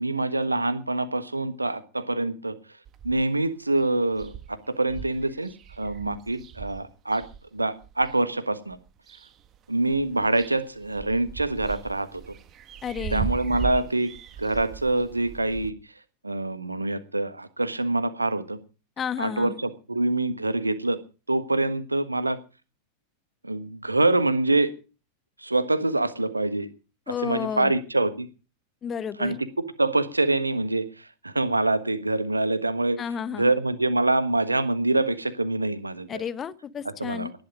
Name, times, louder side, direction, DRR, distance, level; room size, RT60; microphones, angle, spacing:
voice 1, 0.0-2.5 3.0-5.5 5.8-7.2 7.5-8.8 9.7-12.3 13.1-14.1 14.4-15.7 16.2-18.6 19.2-21.0 21.3-22.4 23.4-24.7 25.4-26.7 27.1-28.3 29.2-33.0 33.3-36.2 37.0-37.3, right 2 dB, 80° right, 1.4 m, -25 dB
sound 1, 2.9-3.5 3.8-3.9 4.1-8.2 8.7-9.6 9.8-15.7, right 9 dB, 30° right, 1.5 m, -38 dB
voice 2, 12.8-13.3 19.0-19.6 27.1-27.8 28.8-29.4 33.0-33.5 36.1-37.3, left 8 dB, 25° left, 1.0 m, -32 dB
18.5 x 11.0 x 4.9 m
figure-of-eight pair, 90°, 0 cm